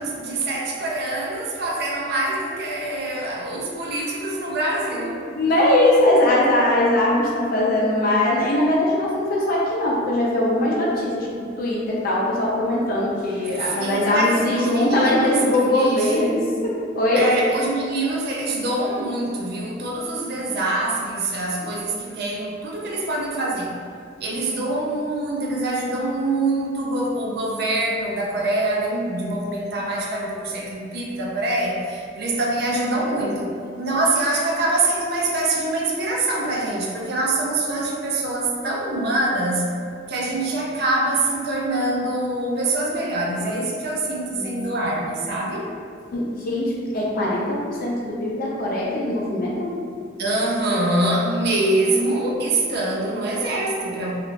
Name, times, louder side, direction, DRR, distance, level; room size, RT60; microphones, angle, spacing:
voice 1, 0.0-5.3 13.6-16.1 17.1-23.8 24.2-33.5 33.8-39.7 40.1-45.7 50.2-54.1, right 2 dB, 60° right, -2 dB, 0.4 m, -24 dB
voice 2, 5.3-11.3 11.6-17.3 44.3-44.8 46.1-49.7, left 1 dB, 50° left, -4 dB, 0.4 m, -21 dB
3.1 x 2.4 x 2.5 m, 2.3 s
head